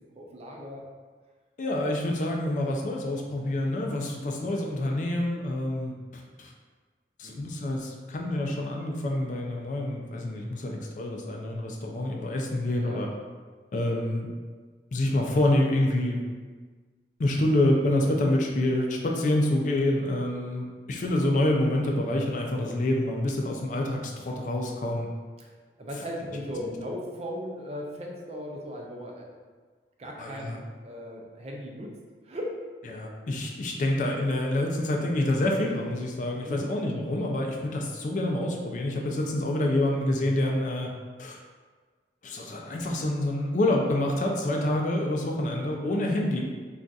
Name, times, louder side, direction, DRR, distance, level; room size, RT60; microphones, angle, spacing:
voice 1, 0.2-0.8 7.2-7.5 12.8-13.0 24.8-25.0 25.4-25.5 25.8-29.4 30.0-31.9 32.2-32.6 36.5-36.7, equal, 35° right, -1 dB, 0.4 m, -37 dB
voice 2, 1.6-6.5 7.2-13.1 13.7-14.3 14.9-16.2 17.2-25.1 30.2-30.6 32.9-40.9 41.2-41.4 42.2-46.4, left 1 dB, 45° left, 0 dB, 0.4 m, -27 dB
2.4 x 2.3 x 3.9 m, 1.5 s
head